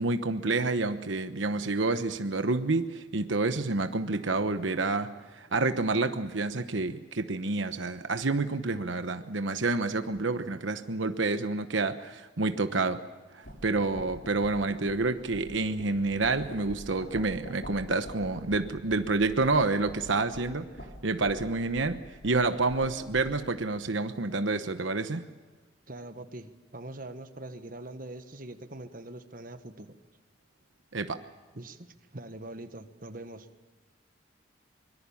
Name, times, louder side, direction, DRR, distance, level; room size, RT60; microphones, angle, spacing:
voice 1, 0.0-5.1 5.3-13.0 13.3-20.7 21.0-25.3 30.9-31.2, right 3 dB, 75° right, 9 dB, 1.1 m, -28 dB
sound 1, 13.4-23.5, equal, 60° left, 6.2 m, -46 dB
voice 2, 25.9-29.9 31.5-31.9 32.1-33.5, right 1 dB, 45° right, 9 dB, 1.4 m, -43 dB
25.0 x 22.5 x 7.2 m, 1.3 s
head